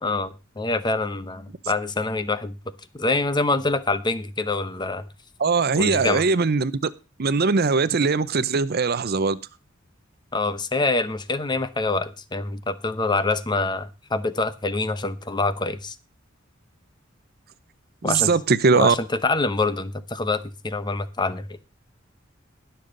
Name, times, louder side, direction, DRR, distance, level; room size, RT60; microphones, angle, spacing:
voice 1, 0.0-2.6 2.9-5.1 5.8-6.2 10.3-15.9 18.0-18.3 18.7-21.6, left 3 dB, 20° left, 0.9 m, -25 dB
voice 2, 5.4-6.9 7.2-9.4 18.0-19.0, right 4 dB, 50° right, 0.7 m, -20 dB
21.0 x 7.0 x 3.8 m
head